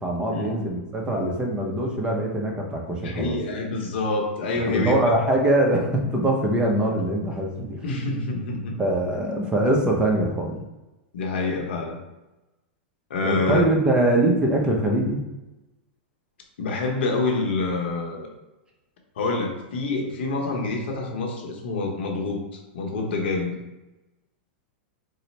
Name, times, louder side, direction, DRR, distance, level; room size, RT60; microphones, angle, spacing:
voice 1, 0.0-3.4 4.7-7.8 8.8-10.6 13.2-15.2, right 1 dB, 15° right, 0 dB, 0.6 m, -23 dB
voice 2, 3.0-5.0 7.8-8.8 11.1-12.0 13.1-13.7 16.6-18.3 19.2-23.6, left 3 dB, 75° left, 1 dB, 0.8 m, -27 dB
4.0 x 2.0 x 3.1 m, 1.0 s
hypercardioid pair, 120°, 6 cm